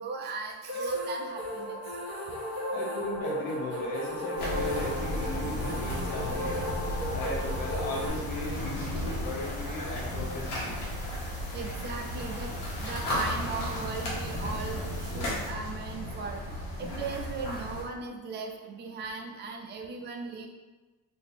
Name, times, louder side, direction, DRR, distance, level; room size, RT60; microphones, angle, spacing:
voice 1, 0.0-1.8 5.2-5.3 11.5-12.5 12.8-20.5, right 4 dB, 30° right, 1 dB, 0.4 m, -38 dB
sound 1, 0.7-8.1, equal, 35° left, 1.2 m, -35 dB
voice 2, 2.7-6.6 7.1-10.8, left 2 dB, 60° left, -3 dB, 1.1 m, -36 dB
sound 2, 4.4-17.8, left 1 dB, 75° left, 1.3 m, -34 dB
2.7 x 2.6 x 4.1 m, 1.2 s
cardioid pair, 145°, 37 cm